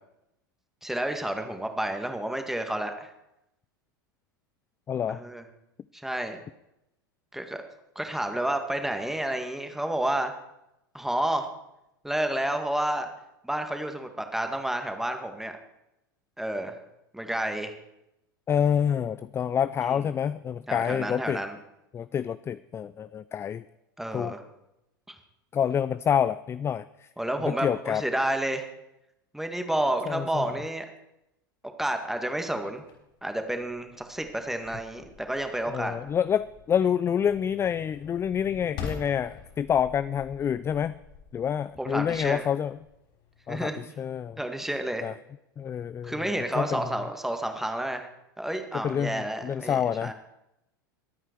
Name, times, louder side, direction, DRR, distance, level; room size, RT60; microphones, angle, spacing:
voice 1, 0.8-3.1 5.1-5.4 6.0-6.4 7.3-7.6 8.0-10.3 10.9-11.5 12.0-13.1 13.4-15.5 16.4-16.8 17.1-17.7 19.9-20.0 20.7-21.6 24.0-24.4 25.1-25.2 27.2-28.7 29.3-30.9 31.6-32.8 33.2-36.0 41.8-42.5 43.5-43.8 44.4-45.1 46.0-48.1 48.4-50.1, right 1 dB, 5° right, 6 dB, 1.9 m, -30 dB
voice 2, 4.9-5.2 18.5-21.4 21.9-23.6 24.1-24.3 25.5-26.8 27.4-28.1 30.1-30.5 35.7-41.0 41.3-42.8 43.5-44.4 45.0-45.1 45.6-46.3 46.6-46.9 48.7-50.1, left 8 dB, 20° left, 16 dB, 0.4 m, -27 dB
sound 1, 32.7-43.7, left 6 dB, 50° left, 5.3 m, -46 dB
23.0 x 9.0 x 4.6 m, 0.86 s
figure-of-eight pair, 85°, 11 cm